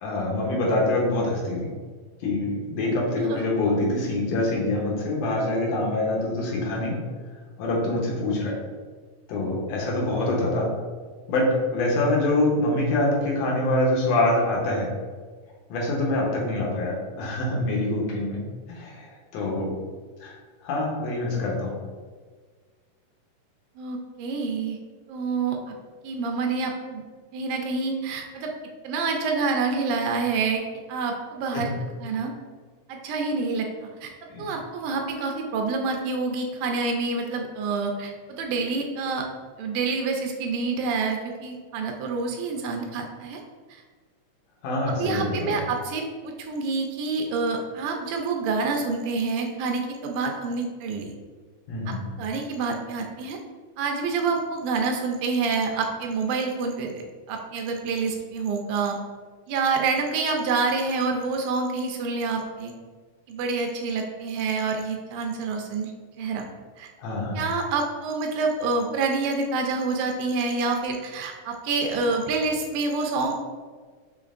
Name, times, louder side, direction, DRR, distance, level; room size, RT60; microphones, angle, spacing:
voice 1, 0.0-1.7 2.2-7.0 7.6-8.5 9.3-10.7 11.3-14.9 15.7-18.4 18.7-19.7 20.2-20.3 20.6-21.8 31.5-31.7 34.3-34.5 44.6-45.6 51.7-52.0 67.0-67.4, left 2 dB, 70° left, -3 dB, 1.9 m, -25 dB
voice 2, 23.8-24.8 25.1-25.6 26.0-27.0 27.3-28.5 28.8-30.6 30.9-31.7 32.0-32.3 32.9-34.1 34.4-39.3 39.6-43.4 43.7-43.8 45.0-51.1 51.9-53.4 53.8-59.0 59.5-62.7 63.3-65.9 66.2-66.4 66.8-66.9 67.3-73.4, right 4 dB, 85° right, 3 dB, 2.0 m, -27 dB
5.1 x 3.7 x 2.5 m, 1.5 s
omnidirectional pair, 3.5 m